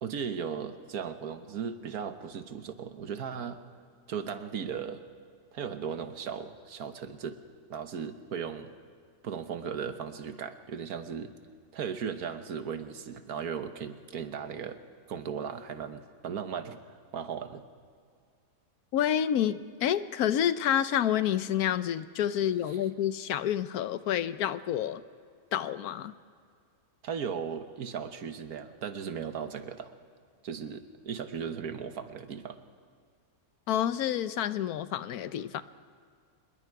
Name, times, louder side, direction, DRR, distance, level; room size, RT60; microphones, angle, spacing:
voice 1, 0.0-3.6 4.1-5.0 5.5-7.4 7.7-8.7 9.2-11.3 11.7-14.8 15.1-16.8 17.1-17.6 27.0-29.9 30.4-32.6, right 7 dB, 80° right, 9 dB, 1.6 m, -37 dB
voice 2, 18.9-25.0 25.5-26.1 33.7-35.6, left 10 dB, 80° left, 14 dB, 1.2 m, -28 dB
25.5 x 21.5 x 4.7 m, 2.1 s
omnidirectional pair, 1.6 m